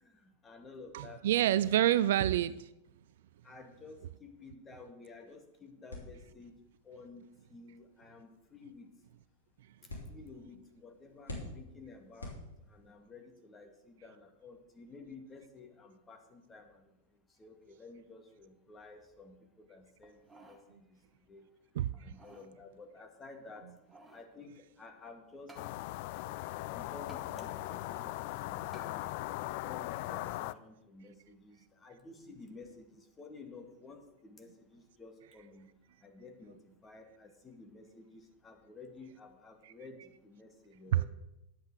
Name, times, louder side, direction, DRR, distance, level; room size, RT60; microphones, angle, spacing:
voice 1, 0.2-1.2 2.0-2.1 3.4-6.6 6.8-8.9 10.1-12.3 12.7-16.8 17.4-21.0 21.3-21.4 22.0-23.6 24.1-25.6 26.6-29.1 29.6-35.7 36.0-41.1, left 3 dB, 20° left, 4 dB, 2.2 m, -52 dB
voice 2, 0.9-2.7 21.7-21.9 40.9-41.1, right 12 dB, 55° right, 17 dB, 0.4 m, -27 dB
sound 1, 5.9-13.0, left 1 dB, 75° left, 3.2 m, -50 dB
sound 2, 20.0-20.7 21.1-21.2 21.9-22.5 23.5-24.3 25.5-25.7 27.1-27.3 28.7-28.9 29.5-29.6, right 2 dB, 10° right, 2.1 m, -56 dB
sound 3, 25.6-30.5, left 17 dB, 50° left, 0.4 m, -39 dB
11.5 x 7.8 x 6.7 m, 0.89 s
figure-of-eight pair, 90°, 0 cm